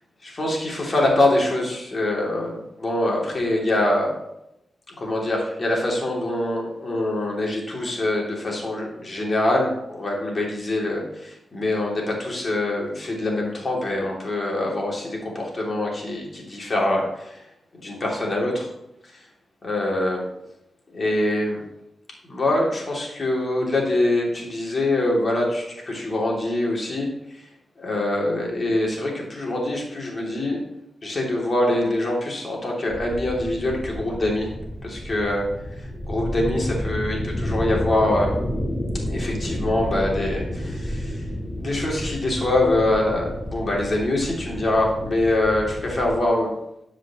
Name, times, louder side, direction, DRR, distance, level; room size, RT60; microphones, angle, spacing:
voice 1, 0.2-4.1 5.0-17.4 17.7-18.7 19.6-20.2 20.9-21.6 22.2-27.4 27.8-30.6 31.0-34.5 34.8-35.5 36.0-38.4 39.1-41.2 41.6-46.5, left 1 dB, 45° left, -2 dB, 2.9 m, -24 dB
sound 1, 32.9-46.1, equal, 20° left, 3.2 m, -30 dB
12.5 x 5.1 x 3.0 m, 0.82 s
cardioid pair, 60°, 0 cm